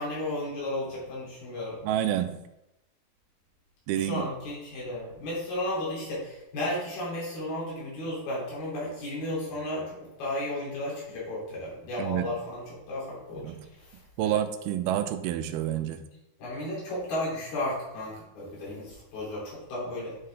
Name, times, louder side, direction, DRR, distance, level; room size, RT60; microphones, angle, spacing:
voice 1, 0.0-1.8 4.0-14.3 16.4-20.2, left 1 dB, 80° left, -6 dB, 5.5 m, -34 dB
voice 2, 1.8-2.4 3.9-4.2 12.0-12.3 13.3-13.7 14.2-16.0, right 11 dB, 90° right, 9 dB, 2.6 m, -28 dB
9.6 x 6.5 x 3.7 m, 0.89 s
omnidirectional pair, 4.4 m